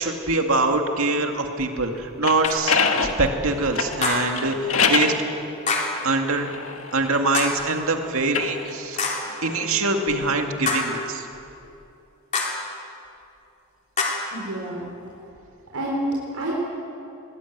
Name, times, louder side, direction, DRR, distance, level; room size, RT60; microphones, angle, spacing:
voice 1, 0.0-5.1 6.0-6.5 6.9-9.0 9.4-11.3, right 3 dB, 70° right, 4 dB, 2.3 m, -24 dB
sound 1, 2.0-5.2 6.0-7.6 8.2-10.5, left 5 dB, 65° left, 1.8 m, -26 dB
sound 2, 2.4-2.8 4.0-4.4 5.7-6.0 7.3-7.7 9.0-9.3 10.7-11.0 12.3-12.7 14.0-14.3, left 3 dB, 35° left, 3.4 m, -26 dB
voice 2, 14.3-14.8 15.7-16.6, right 1 dB, 85° right, -4 dB, 4.3 m, -28 dB
21.5 x 20.0 x 9.4 m, 2.8 s
head